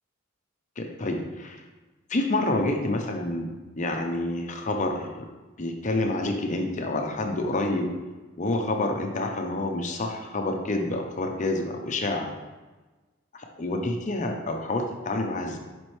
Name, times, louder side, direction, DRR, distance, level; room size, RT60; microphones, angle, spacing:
voice 1, 0.8-1.6 2.1-5.2 5.6-7.8 8.4-12.3 13.3-15.6, left 2 dB, 35° left, 3 dB, 0.7 m, -28 dB
7.4 x 5.2 x 3.2 m, 1.2 s
head